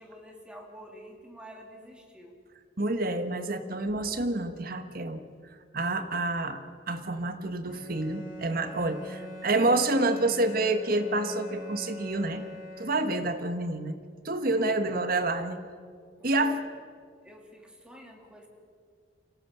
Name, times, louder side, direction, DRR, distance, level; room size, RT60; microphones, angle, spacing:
voice 1, 0.0-2.4 14.6-15.0 16.1-16.6 17.2-18.5, equal, 5° right, 1 dB, 3.0 m, -49 dB
voice 2, 2.8-5.2 5.7-12.4 12.8-14.0 14.2-15.6 16.2-16.6, right 2 dB, 55° right, 9 dB, 1.3 m, -28 dB
Bowed string instrument, 7.6-13.4, left 1 dB, 55° left, 7.6 m, -43 dB
25.0 x 17.5 x 6.9 m, 2.1 s
head